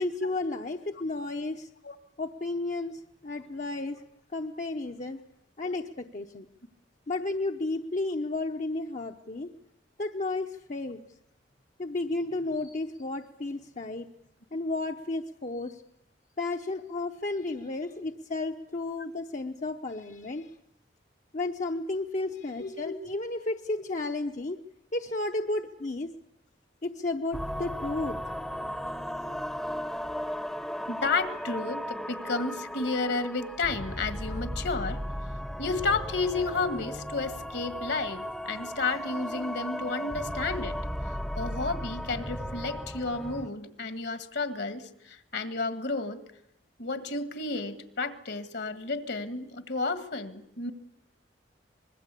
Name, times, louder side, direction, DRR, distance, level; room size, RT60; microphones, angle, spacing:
voice 1, 0.0-1.7 2.2-4.0 4.3-5.2 5.6-6.5 7.1-9.5 10.0-11.0 11.8-14.1 14.5-15.8 16.4-20.5 21.3-24.6 24.9-26.1 26.8-28.2, left 2 dB, 45° left, 4 dB, 0.9 m, -32 dB
voice 2, 22.6-22.9 30.9-35.0 35.6-40.8 41.3-46.2 46.8-50.7, left 3 dB, 65° left, 10 dB, 1.8 m, -32 dB
sound 1, 27.3-43.5, equal, ahead, 0.9 m, -36 dB
25.0 x 21.0 x 8.4 m, 0.79 s
head